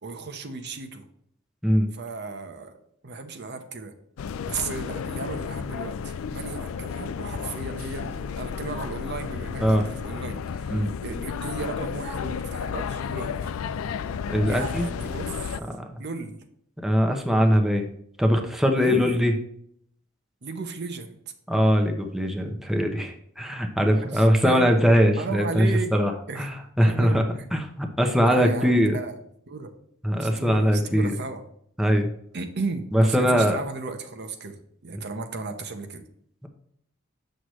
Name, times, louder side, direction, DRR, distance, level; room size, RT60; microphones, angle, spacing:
voice 1, 0.0-1.0 1.9-2.8 3.0-3.9 4.4-13.5 14.5-15.4 16.0-16.4 18.8-19.2 20.4-21.2 24.0-24.6 25.2-25.9 26.3-26.5 26.8-27.2 28.2-29.1 29.5-29.7 30.2-31.5 32.3-36.0, right 4 dB, 55° right, 7 dB, 0.8 m, -34 dB
sound 1, 4.2-15.6, left 6 dB, 90° left, 0.4 m, -32 dB
voice 2, 14.3-14.9 15.8-16.0 16.8-17.9 18.2-19.3 21.5-25.7 25.9-26.1 26.4-27.2 27.5-29.0 30.0-31.2 31.8-32.1 32.9-33.6, equal, ahead, 3 dB, 0.7 m, -21 dB
7.8 x 6.3 x 3.1 m, 0.68 s
head